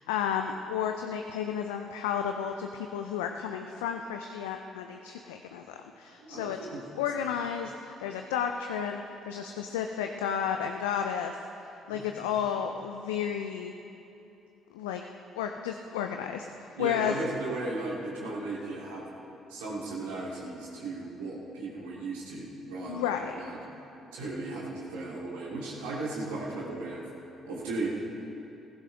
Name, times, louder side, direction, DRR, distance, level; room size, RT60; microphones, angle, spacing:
voice 1, 0.0-6.6 7.0-11.4 11.9-13.7 14.7-15.0 15.4-17.2 22.9-23.4, left 8 dB, 85° left, 5 dB, 0.5 m, -32 dB
voice 2, 6.2-6.8 11.9-12.1 16.7-19.0 19.5-23.1 23.3-23.6 24.1-27.1 27.4-27.9, right 2 dB, 85° right, -5 dB, 2.7 m, -36 dB
15.5 x 15.5 x 3.4 m, 2.9 s
hypercardioid pair, 50°, 0 cm